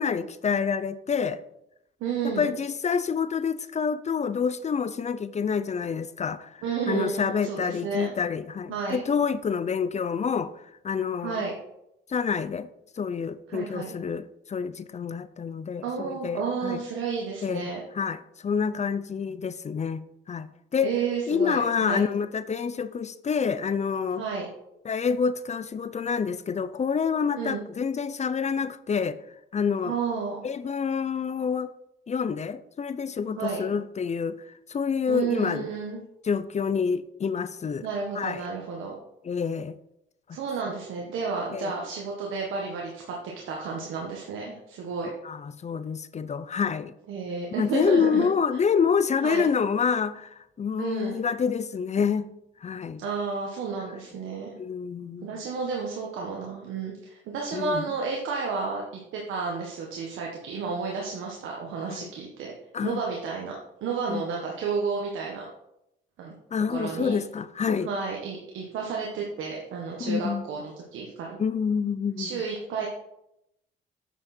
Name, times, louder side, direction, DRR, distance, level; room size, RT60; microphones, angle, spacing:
voice 1, 0.0-1.4 2.2-10.5 10.8-11.5 12.1-12.7 13.0-16.8 17.4-21.0 21.3-24.3 24.8-29.2 29.5-30.0 30.4-31.7 32.1-35.7 36.2-37.9 38.1-38.5 39.2-39.7 41.5-41.8 45.2-46.9 47.5-52.3 52.6-53.1 53.9-54.0 54.6-55.4 57.5-57.9 61.9-62.1 62.7-63.0 64.1-64.2 66.5-67.9 70.0-70.4 71.4-72.4, left 6 dB, 35° left, 14 dB, 0.6 m, -28 dB
voice 2, 2.0-2.5 6.6-8.1 8.7-9.1 11.2-11.5 13.5-13.9 15.8-17.8 20.8-22.0 24.2-24.5 27.3-27.6 29.8-30.4 33.4-33.6 35.1-36.0 37.8-38.9 40.3-43.0 43.5-45.1 47.1-48.2 49.2-49.5 50.8-51.2 53.0-54.5 55.2-58.8 59.1-62.5 62.8-63.5 63.8-65.4 66.2-66.3 66.7-67.1 67.8-71.4 72.2-72.9, right 5 dB, 85° right, -1 dB, 1.6 m, -31 dB
9.0 x 6.4 x 4.4 m, 0.82 s
cardioid pair, 90°, 20 cm